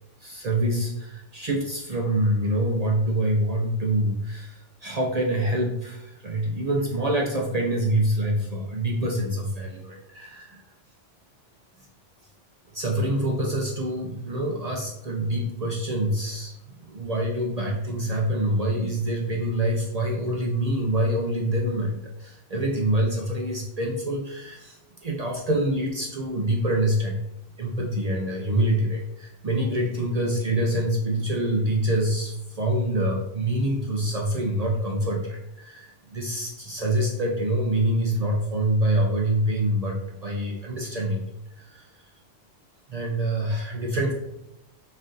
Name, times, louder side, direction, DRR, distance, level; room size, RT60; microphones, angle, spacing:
voice 1, 0.2-10.6 12.7-16.5 16.8-27.2 27.6-41.2 41.6-41.9 42.9-44.1, right 1 dB, 60° right, -1 dB, 0.4 m, -26 dB
4.2 x 2.5 x 3.7 m, 0.85 s
omnidirectional pair, 1.3 m